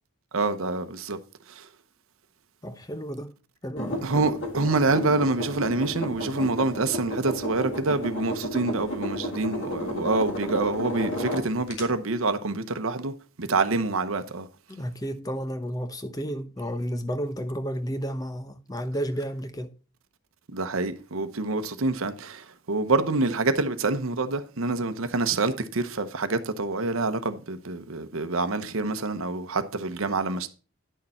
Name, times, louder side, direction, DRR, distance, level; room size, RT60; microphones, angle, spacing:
voice 1, 0.3-1.2 1.5-1.7 4.0-14.5 20.5-30.5, right 3 dB, 70° right, 0.8 m, -26 dB
voice 2, 2.6-3.3 3.6-4.1 14.7-19.7, equal, 15° left, 0.7 m, -32 dB
sound 1, 3.8-11.8, equal, 55° left, 2.1 m, -32 dB
10.0 x 6.6 x 4.2 m
head